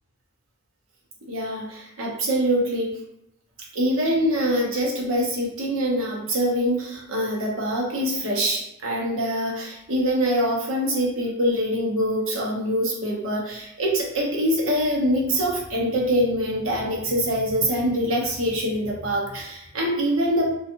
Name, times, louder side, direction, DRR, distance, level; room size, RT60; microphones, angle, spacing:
voice 1, 1.3-2.9 3.7-20.6, equal, 65° right, -2 dB, 0.8 m, -24 dB
2.6 x 2.3 x 2.7 m, 0.82 s
head